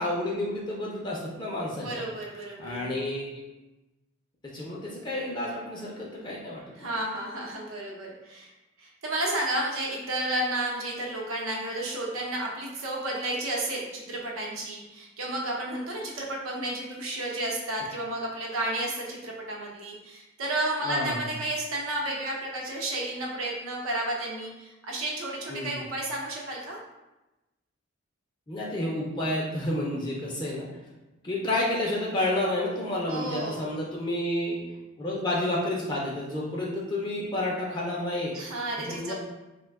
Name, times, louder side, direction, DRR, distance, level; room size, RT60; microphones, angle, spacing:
voice 1, 0.0-2.0 2.6-3.2 4.5-6.9 20.8-21.2 25.5-25.8 28.5-30.7 31.2-34.6 35.0-38.4 38.8-39.1, left 1 dB, 20° left, -4 dB, 0.4 m, -30 dB
voice 2, 1.8-2.9 6.8-8.5 8.8-26.8 33.1-33.7 38.3-39.1, right 1 dB, 85° right, -2 dB, 0.8 m, -32 dB
3.2 x 2.1 x 3.4 m, 1.0 s
head